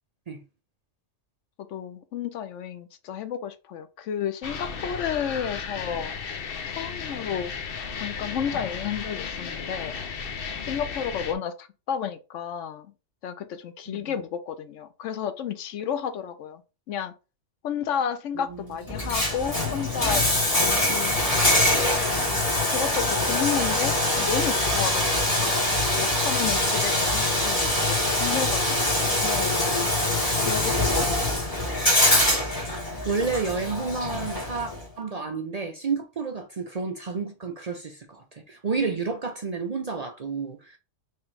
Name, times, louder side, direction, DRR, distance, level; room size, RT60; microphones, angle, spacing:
voice 1, 1.6-6.1 6.7-7.5 7.9-10.3 10.6-12.9 13.2-16.6 16.9-17.1 17.6-22.0 22.7-29.6 30.4-31.4, left 8 dB, 80° left, 1.0 m, -32 dB
sound 1, 4.4-11.3, left 6 dB, 55° left, 0.8 m, -34 dB
Bathtub (filling or washing), 18.9-34.8, left 1 dB, 30° left, 1.8 m, -24 dB
voice 2, 33.0-34.7 35.0-40.8, right 4 dB, 45° right, 0.5 m, -30 dB
3.3 x 3.0 x 4.5 m
omnidirectional pair, 1.3 m